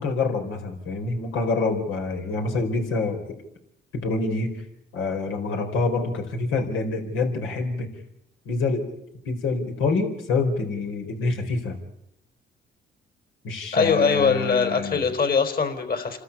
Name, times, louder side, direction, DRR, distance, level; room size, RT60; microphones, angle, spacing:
voice 1, 0.0-3.4 3.9-4.5 4.9-7.9 8.4-8.9 9.2-11.8 13.4-15.0, left 3 dB, 85° left, 4 dB, 4.5 m, -26 dB
voice 2, 13.7-16.2, left 5 dB, 50° left, 7 dB, 4.2 m, -22 dB
29.5 x 13.5 x 8.6 m, 0.78 s
cardioid pair, 90°, 20 cm